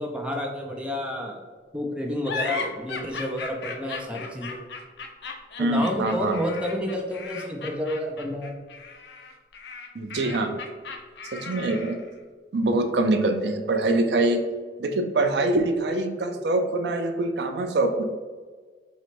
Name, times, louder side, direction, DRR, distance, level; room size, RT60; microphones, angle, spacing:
voice 1, 0.0-1.4 1.7-4.6 5.6-8.5, left 1 dB, 5° right, 0 dB, 0.4 m, -30 dB
sound 1, 2.2-12.1, left 4 dB, 75° left, 0.5 m, -36 dB
voice 2, 5.6-6.4 9.9-10.5 11.3-12.0 12.5-14.4 14.8-18.0, right 2 dB, 70° right, 7 dB, 0.4 m, -24 dB
2.9 x 2.8 x 4.4 m, 1.4 s
head